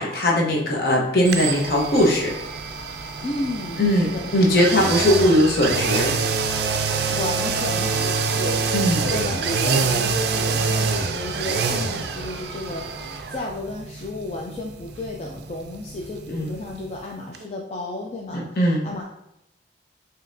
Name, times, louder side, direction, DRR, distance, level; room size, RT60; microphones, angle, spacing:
voice 1, 0.0-2.3 3.8-6.1 8.7-9.1 16.3-16.6 18.3-18.9, left 1 dB, 55° left, -2 dB, 0.8 m, -20 dB
sound 1, 1.2-17.1 17.3-17.4, right 5 dB, 60° right, 0.3 m, -26 dB
voice 2, 3.2-4.8 7.1-19.0, left 2 dB, 35° left, -1 dB, 0.3 m, -33 dB
5.2 x 2.8 x 2.6 m, 0.84 s
head